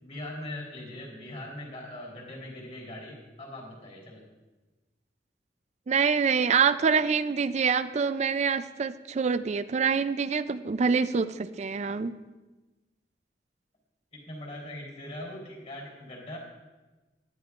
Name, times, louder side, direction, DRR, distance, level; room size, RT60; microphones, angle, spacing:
voice 1, 0.0-4.2 14.1-16.4, left 1 dB, 40° left, -1 dB, 3.9 m, -41 dB
voice 2, 5.9-12.1, right 6 dB, 40° right, 13 dB, 0.4 m, -26 dB
18.5 x 12.0 x 2.5 m, 1.2 s
head